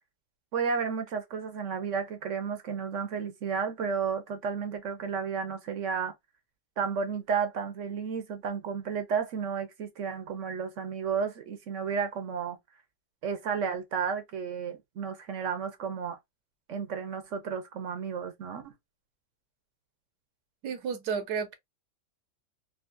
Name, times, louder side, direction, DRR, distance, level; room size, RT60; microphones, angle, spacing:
voice 1, 0.5-6.1 6.8-12.6 13.2-16.2 16.7-18.7, right 6 dB, 60° right, 0.9 m, -32 dB
voice 2, 20.6-21.5, right 6 dB, 85° right, 1.4 m, -32 dB
3.7 x 2.8 x 2.5 m
omnidirectional pair, 1.8 m